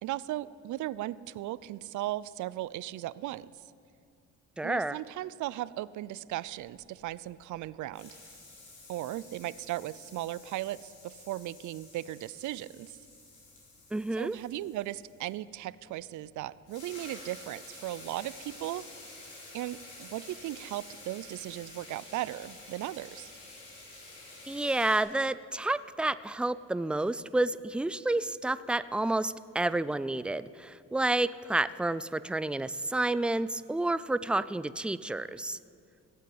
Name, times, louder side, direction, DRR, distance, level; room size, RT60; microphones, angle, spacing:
voice 1, 0.0-3.5 4.6-8.2 8.9-13.0 14.2-18.8 19.5-23.3, right 15 dB, 75° right, 19 dB, 0.5 m, -37 dB
voice 2, 4.6-5.0 13.9-14.4 24.5-35.6, right 2 dB, 5° right, 16 dB, 0.3 m, -30 dB
sound 1, 6.4-7.7 7.9-15.4 16.3-16.4 16.6-25.0, left 2 dB, 80° left, 4.3 m, -50 dB
16.5 x 8.5 x 7.8 m, 2.4 s
cardioid pair, 90°, 30 cm